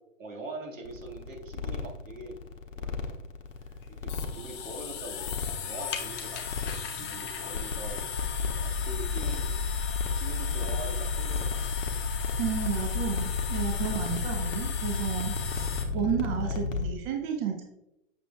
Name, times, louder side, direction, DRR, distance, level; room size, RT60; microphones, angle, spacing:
voice 1, 0.2-2.4 2.7-2.9 3.9-8.0 8.4-9.5 10.1-11.9 15.9-16.1 16.4-16.6, right 2 dB, 80° right, 0 dB, 1.9 m, -43 dB
sound 1, 0.9-16.9, left 5 dB, 85° left, 1.1 m, -32 dB
sound 2, 3.5-15.8, left 7 dB, 30° left, 0.9 m, -38 dB
voice 2, 12.4-17.6, right 8 dB, 35° right, 3 dB, 1.0 m, -32 dB
7.9 x 6.5 x 2.3 m, 0.87 s
hypercardioid pair, 115°, 38 cm